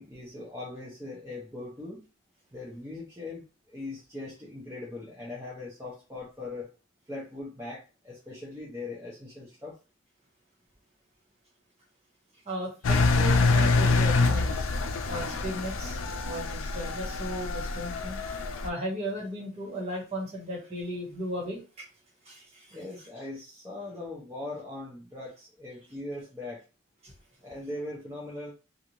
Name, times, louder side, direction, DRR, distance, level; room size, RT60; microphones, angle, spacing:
voice 1, 0.0-2.1 2.5-6.7 7.1-9.8 22.7-26.6 27.4-28.5, left 2 dB, 15° right, -5 dB, 0.7 m, -40 dB
voice 2, 12.4-14.5 15.1-16.0 16.2-18.2 18.6-21.8 22.2-22.7 27.0-27.1, equal, 35° right, -4 dB, 1.4 m, -36 dB
Engine, 12.8-18.7, left 3 dB, 85° left, 0.4 m, -26 dB
2.6 x 2.5 x 3.0 m, 0.31 s
head